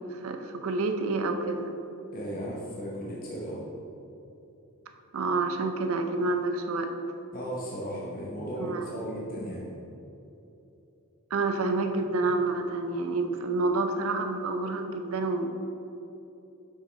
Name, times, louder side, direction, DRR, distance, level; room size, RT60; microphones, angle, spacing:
voice 1, 0.0-1.7 5.1-6.9 8.6-8.8 11.3-15.5, right 3 dB, 75° right, 5 dB, 0.5 m, -28 dB
voice 2, 2.1-3.7 7.3-9.7, equal, 40° left, -4 dB, 0.8 m, -35 dB
7.1 x 5.6 x 3.2 m, 2.9 s
head